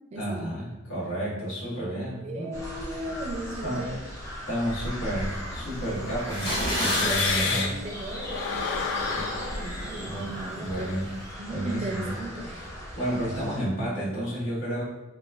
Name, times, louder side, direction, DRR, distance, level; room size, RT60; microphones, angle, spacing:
voice 1, 0.1-2.6 2.8-3.0 3.6-4.0 4.5-7.7 9.1-9.3 9.6-9.7 10.0-11.1 11.5-12.1 12.4-12.7 12.9-14.8, right 1 dB, 85° left, -9 dB, 1.4 m, -31 dB
voice 2, 2.1-4.0 6.7-10.9 11.4-12.5, right 1 dB, 35° right, 1 dB, 0.4 m, -37 dB
sound 1, 2.5-13.6, equal, 15° left, 0.6 m, -38 dB
sound 2, 5.2-7.9 8.2-11.3, left 4 dB, 65° left, 0.4 m, -31 dB
sound 3, 6.2-7.4, equal, 50° left, 1.4 m, -28 dB
3.1 x 2.2 x 2.3 m, 1.0 s
head